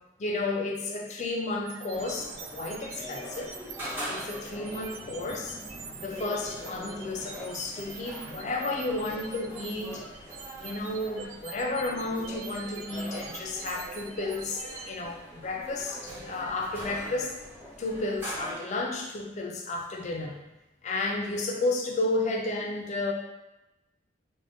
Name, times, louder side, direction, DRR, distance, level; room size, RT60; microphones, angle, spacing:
voice 1, 0.2-3.6 4.1-5.6 6.0-10.0 10.6-17.4 17.8-20.3 20.8-23.1, left 2 dB, 35° left, 1 dB, 0.3 m, -32 dB
sound 1, 1.6-14.9, right 6 dB, 85° right, 0.3 m, -45 dB
sound 2, 1.9-18.6, equal, 10° right, 0.9 m, -42 dB
2.5 x 2.1 x 3.4 m, 0.97 s
head